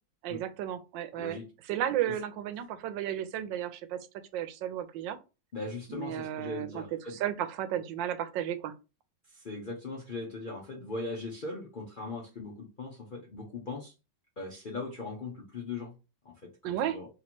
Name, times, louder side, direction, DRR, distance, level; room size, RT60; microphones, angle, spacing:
voice 1, 0.2-1.4 1.7-4.0 4.3-5.2 5.9-6.8 7.1-8.7 16.6-17.0, right 11 dB, 85° right, 1.3 m, -33 dB
voice 2, 1.2-1.5 2.1-2.2 5.5-7.2 9.3-13.9 14.4-15.9 16.2-17.1, left 3 dB, 65° left, 0.5 m, -39 dB
3.2 x 2.9 x 4.2 m
omnidirectional pair, 2.0 m